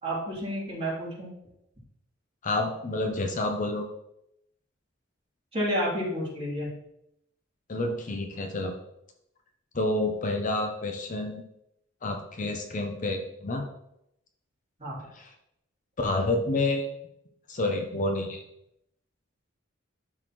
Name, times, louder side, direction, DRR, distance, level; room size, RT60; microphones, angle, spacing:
voice 1, 0.0-1.3 5.5-6.7 14.8-15.0, equal, 30° right, -6 dB, 3.0 m, -30 dB
voice 2, 2.4-3.9 7.7-8.7 9.7-11.3 12.0-13.6 16.0-16.9 17.5-18.4, left 2 dB, 40° left, 3 dB, 0.7 m, -29 dB
11.5 x 4.0 x 3.1 m, 0.80 s
head